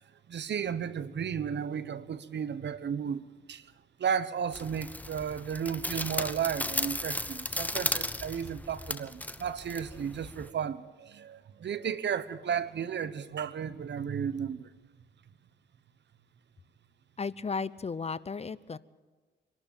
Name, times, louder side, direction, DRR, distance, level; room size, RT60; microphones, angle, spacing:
voice 1, 0.3-3.7 4.0-14.7, right 7 dB, 65° right, 1.1 m, -34 dB
sound 1, 4.5-10.5, left 1 dB, 10° left, 1.1 m, -35 dB
voice 2, 17.2-18.8, left 4 dB, 35° left, 0.7 m, -34 dB
25.5 x 12.0 x 8.9 m
cardioid pair, 70°, 19 cm